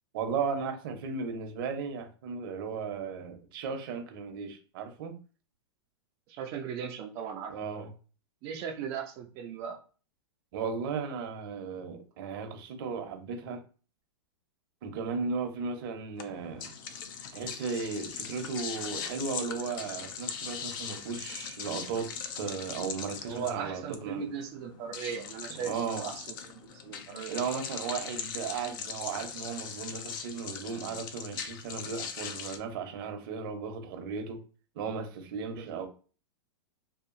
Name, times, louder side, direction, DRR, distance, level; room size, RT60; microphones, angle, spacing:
voice 1, 0.1-5.2 7.5-7.9 10.5-13.6 14.8-16.7 17.3-24.3 25.5-26.1 27.3-34.4 34.8-35.9, right 5 dB, 55° right, 0.8 m, -36 dB
voice 2, 6.3-7.9 8.4-9.8 23.3-27.4 35.5-35.9, right 7 dB, 35° right, 0.4 m, -38 dB
sound 1, 16.2-32.6, left 7 dB, 50° left, 0.5 m, -40 dB
2.7 x 2.4 x 2.5 m
supercardioid pair, 145°, 14 cm